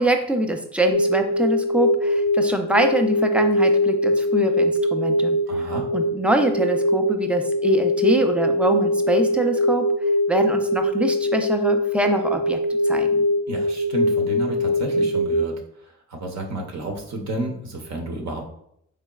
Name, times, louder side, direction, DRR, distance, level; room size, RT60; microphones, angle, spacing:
voice 1, 0.0-5.4 5.9-9.9 10.3-12.6 12.8-13.2, right 1 dB, 5° right, 5 dB, 0.4 m, -23 dB
sound 1, 0.9-15.4, left 1 dB, 85° left, 0.7 m, -22 dB
voice 2, 5.5-5.9 13.5-18.4, right 2 dB, 60° right, 2 dB, 0.7 m, -31 dB
3.8 x 3.3 x 2.3 m, 0.73 s
cardioid pair, 90°, 30 cm